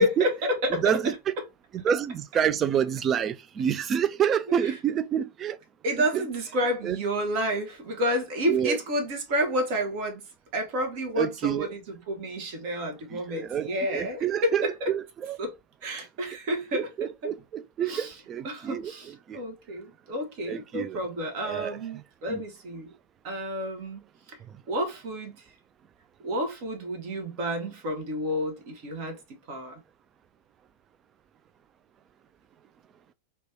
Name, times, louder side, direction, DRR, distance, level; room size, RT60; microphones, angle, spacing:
voice 1, 0.0-1.0 1.4-1.5 4.5-4.8 5.8-10.2 10.5-14.9 15.4-15.6 15.8-17.1 17.8-18.2 18.4-22.9 23.2-24.0 24.3-24.4 24.7-25.5 26.2-29.8, equal, 45° right, 0.8 m, -30 dB
voice 2, 0.7-1.3 1.7-5.6 6.1-6.2 6.8-7.0 8.5-8.8 11.2-11.7 13.1-15.4 16.7-18.9 19.3-19.4 20.5-21.0 21.4-21.8 22.3-22.4, right 9 dB, 25° right, 0.3 m, -28 dB
3.2 x 2.2 x 2.7 m
figure-of-eight pair, 90°, 0 cm